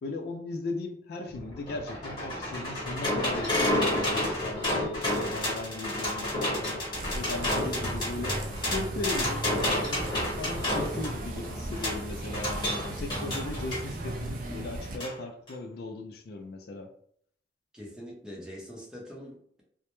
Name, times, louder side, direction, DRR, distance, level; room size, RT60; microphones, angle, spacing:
voice 1, 0.0-6.9 7.1-8.4 8.7-16.9, left 2 dB, 60° left, 5 dB, 0.3 m, -37 dB
sound 1, 1.3-13.9 15.0-15.1 15.5-15.6, left 1 dB, 25° left, 1.0 m, -30 dB
sound 2, 6.9-15.0, right 1 dB, 50° right, 0.4 m, -37 dB
voice 2, 17.7-19.6, equal, 5° right, -3 dB, 0.6 m, -43 dB
2.1 x 2.0 x 2.9 m, 0.63 s
head